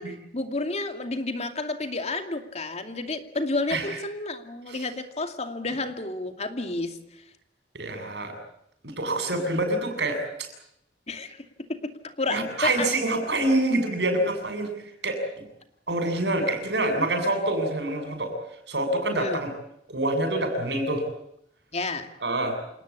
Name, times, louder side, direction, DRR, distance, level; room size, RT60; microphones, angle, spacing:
voice 1, 0.0-7.0 11.1-11.4 11.7-12.9 16.4-16.5 19.1-19.4 21.7-22.1, left 2 dB, 40° left, 7 dB, 2.5 m, -31 dB
voice 2, 7.7-8.3 8.8-10.5 12.3-14.7 15.0-15.4 15.9-18.3 18.7-19.5 19.9-21.0 22.2-22.6, right 1 dB, 75° right, 7 dB, 7.4 m, -26 dB
28.0 x 18.5 x 8.4 m, 0.76 s
head